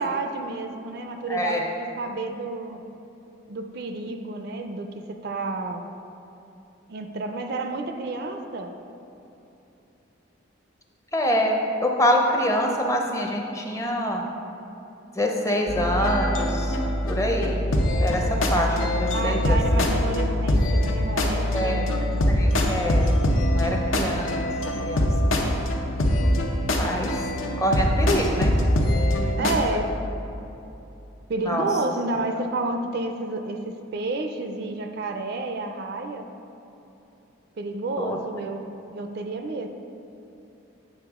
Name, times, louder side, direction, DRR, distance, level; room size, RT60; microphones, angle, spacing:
voice 1, 0.0-2.8 3.5-5.9 6.9-8.7 19.1-21.9 23.6-23.9 29.4-29.9 31.3-36.3 37.6-39.7, right 2 dB, 50° right, 6 dB, 0.4 m, -30 dB
voice 2, 1.3-1.7 11.1-14.2 15.1-16.8 17.1-17.6 18.0-19.6 21.5-23.1 23.5-24.4 24.9-25.1 26.8-27.1 27.6-28.5 29.4-29.5 31.4-31.7 38.0-38.2, equal, 15° left, 1 dB, 0.5 m, -25 dB
sound 1, 15.7-29.6, left 1 dB, 80° left, 0.8 m, -23 dB
8.7 x 5.3 x 3.6 m, 2.9 s
head